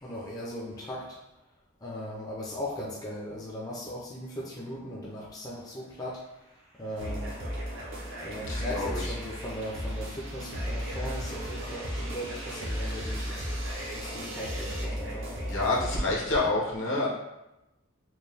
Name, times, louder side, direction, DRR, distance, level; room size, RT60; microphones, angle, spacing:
voice 1, 0.0-1.2 1.8-6.2 6.7-7.3 8.2-13.4 13.9-15.3, left 1 dB, 20° left, -6 dB, 0.6 m, -38 dB
sound 1, 5.9-14.8, right 1 dB, 85° right, 1.0 m, -46 dB
sound 2, 7.0-16.0, equal, 65° right, 0.8 m, -35 dB
voice 2, 8.5-9.0 15.5-17.1, left 2 dB, 65° left, -4 dB, 1.1 m, -27 dB
4.4 x 2.3 x 3.3 m, 0.93 s
head